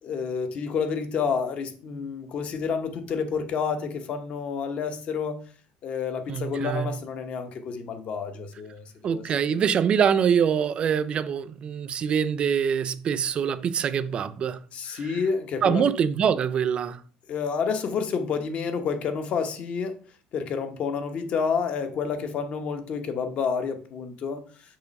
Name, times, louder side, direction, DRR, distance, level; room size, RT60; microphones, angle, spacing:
voice 1, 0.0-5.4 5.8-9.6 14.7-15.8 17.3-20.0 20.3-24.4, left 6 dB, 45° left, 0.9 m, -29 dB
voice 2, 6.3-6.9 9.0-14.6 15.6-17.0, right 7 dB, 35° right, 0.5 m, -24 dB
6.9 x 3.0 x 5.3 m
cardioid pair, 135°, 3 cm